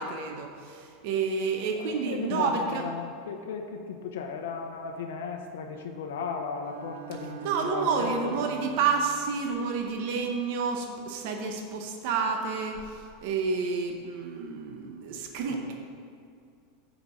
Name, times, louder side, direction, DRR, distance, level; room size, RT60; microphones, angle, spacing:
voice 1, 0.0-2.8 7.4-15.8, right 5 dB, 50° right, 3 dB, 0.8 m, -29 dB
voice 2, 1.7-8.5 15.5-15.8, left 5 dB, 90° left, 3 dB, 0.7 m, -36 dB
Bowed string instrument, 6.6-9.7, right 10 dB, 90° right, 0.3 m, -43 dB
6.7 x 5.1 x 6.4 m, 2.4 s
supercardioid pair, 170°, 0 cm